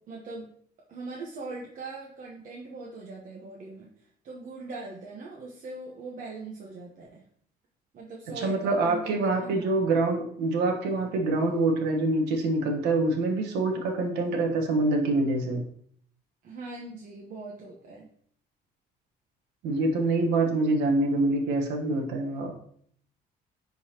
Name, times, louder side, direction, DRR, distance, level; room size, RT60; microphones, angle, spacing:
voice 1, 0.1-0.5 0.9-3.9 4.2-7.2 7.9-9.7 16.4-18.1, right 3 dB, 50° right, -3 dB, 1.1 m, -41 dB
voice 2, 8.3-15.6 19.6-22.5, right 2 dB, 85° right, 3 dB, 1.2 m, -25 dB
9.9 x 4.0 x 2.9 m, 0.62 s
cardioid pair, 110°, 17 cm